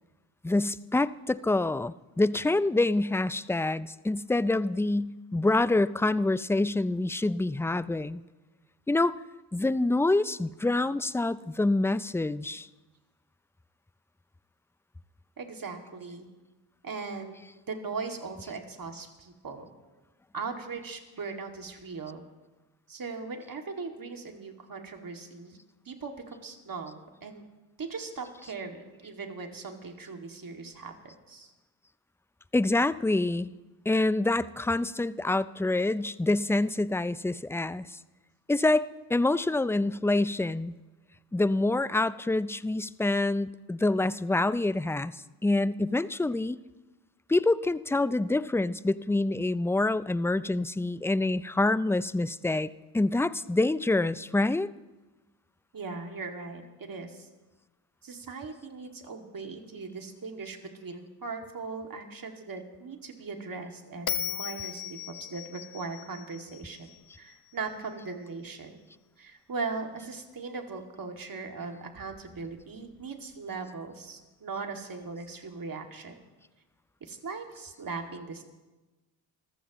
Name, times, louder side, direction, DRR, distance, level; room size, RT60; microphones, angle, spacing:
voice 1, 0.4-8.2 8.9-9.1 9.5-12.7 32.5-33.5 33.9-37.9 38.5-40.7 41.3-46.6 47.3-54.7, left 2 dB, 5° left, 17 dB, 0.4 m, -26 dB
voice 2, 15.4-16.3 16.8-17.4 17.7-19.7 20.3-22.2 22.9-25.6 25.9-27.4 27.8-31.5 55.7-57.3 58.0-66.9 67.1-68.8 69.2-76.2 77.0-78.4, right 4 dB, 50° right, 3 dB, 2.4 m, -39 dB
Bell, 64.1-67.3, left 9 dB, 55° left, 1.0 m, -37 dB
26.0 x 15.0 x 3.1 m, 1.1 s
supercardioid pair, 55°, 44 cm